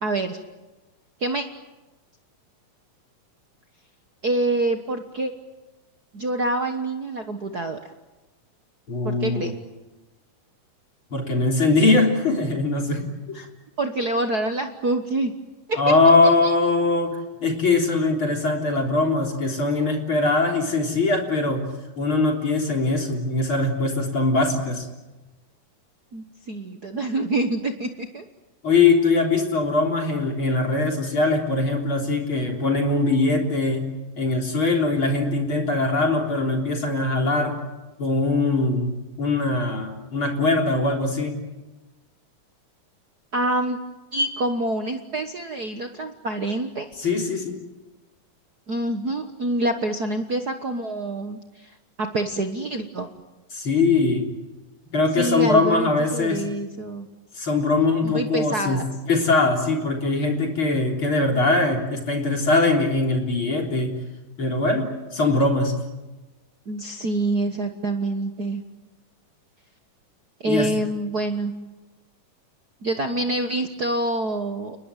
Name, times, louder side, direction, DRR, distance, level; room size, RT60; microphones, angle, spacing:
voice 1, 0.0-0.4 1.2-1.4 4.2-5.3 6.1-7.8 9.0-9.5 13.3-13.5 13.8-15.3 15.7-15.8 16.4-16.5 26.1-28.2 43.3-43.8 44.1-46.9 48.7-51.7 52.0-53.1 55.2-57.1 58.0-58.9 66.7-68.6 70.4-71.5 72.8-74.8, right 2 dB, 60° right, 6 dB, 1.0 m, -26 dB
voice 2, 8.9-9.5 11.1-13.1 13.3-13.5 15.8-21.6 22.0-24.9 28.6-33.9 34.2-37.6 38.0-41.4 47.0-47.6 53.5-54.3 54.9-56.4 57.4-58.8 59.1-63.9 64.4-65.7 70.4-70.7, left 3 dB, 40° left, 2 dB, 4.2 m, -21 dB
30.0 x 20.0 x 9.1 m, 1.1 s
omnidirectional pair, 3.8 m